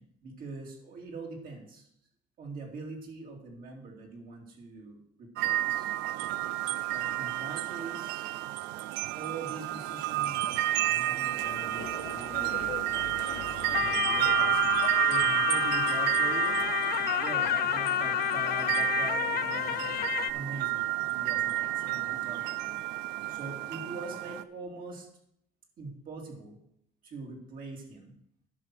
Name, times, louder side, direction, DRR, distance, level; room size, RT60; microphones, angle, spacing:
voice 1, 0.0-1.9 2.4-5.9 6.9-8.3 9.1-12.7 13.7-14.8 15.1-16.6 17.2-20.0 20.3-22.8 23.3-25.1 25.8-26.6 27.0-28.1, right 3 dB, 60° right, 0 dB, 3.0 m, -43 dB
sound 1, 5.4-24.4, right 16 dB, 90° right, 0.5 m, -30 dB
sound 2, 11.4-20.3, left 14 dB, 65° left, 0.5 m, -31 dB
10.5 x 5.9 x 6.3 m, 0.71 s
cardioid pair, 110°, 17 cm